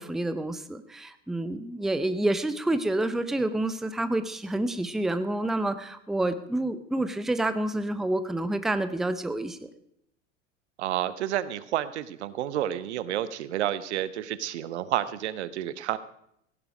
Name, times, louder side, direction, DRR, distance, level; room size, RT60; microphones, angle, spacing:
voice 1, 0.0-9.6, right 1 dB, ahead, 12 dB, 0.6 m, -28 dB
voice 2, 10.8-16.0, right 12 dB, 60° right, 16 dB, 0.8 m, -30 dB
16.0 x 11.0 x 5.1 m, 0.73 s
figure-of-eight pair, 80°, 39 cm